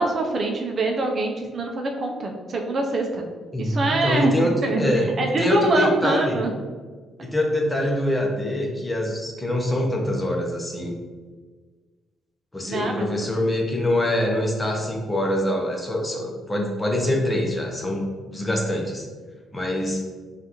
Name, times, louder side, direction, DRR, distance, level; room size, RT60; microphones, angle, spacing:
voice 1, 0.0-3.3 3.6-4.3 4.6-6.5 12.7-13.1, right 2 dB, 45° right, 2 dB, 0.6 m, -24 dB
voice 2, 3.5-5.1 5.4-6.4 7.2-11.0 12.5-19.1 19.5-20.0, left 1 dB, 15° left, 1 dB, 0.8 m, -24 dB
5.2 x 2.5 x 3.0 m, 1.4 s
cardioid pair, 90°, 0 cm